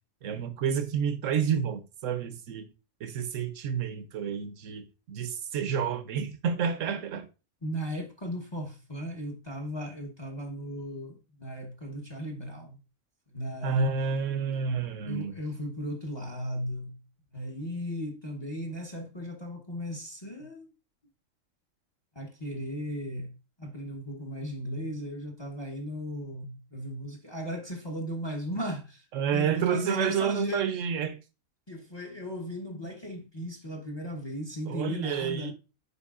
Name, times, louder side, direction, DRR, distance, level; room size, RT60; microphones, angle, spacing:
voice 1, 0.2-2.7 3.0-7.3 13.6-15.3 29.1-31.2 34.7-35.5, right 7 dB, 65° right, 1.1 m, -29 dB
voice 2, 7.6-12.7 13.3-14.0 15.1-17.0 17.3-20.7 22.1-29.1 29.3-30.6 31.7-35.5, equal, 20° left, 1.0 m, -36 dB
8.2 x 5.0 x 2.4 m
omnidirectional pair, 1.5 m